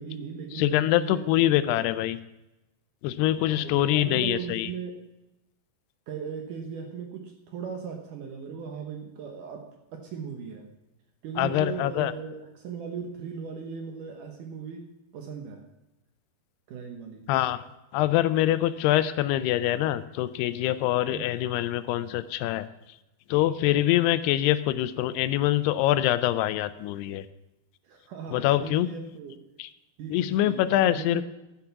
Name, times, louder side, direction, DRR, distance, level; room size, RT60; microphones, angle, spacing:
voice 1, 0.0-1.2 1.6-1.8 3.5-5.0 6.1-10.7 11.2-14.9 15.1-15.7 16.7-17.3 21.1-21.3 23.7-23.9 27.8-29.4 30.0-31.2, right 6 dB, 70° right, 4 dB, 2.2 m, -38 dB
voice 2, 0.5-2.2 3.0-4.7 11.4-12.1 17.3-17.6 17.9-22.7 23.3-27.3 28.3-28.9 29.6-29.7 30.1-31.2, left 14 dB, 85° left, 14 dB, 2.5 m, -24 dB
11.5 x 9.8 x 5.8 m, 0.95 s
omnidirectional pair, 4.8 m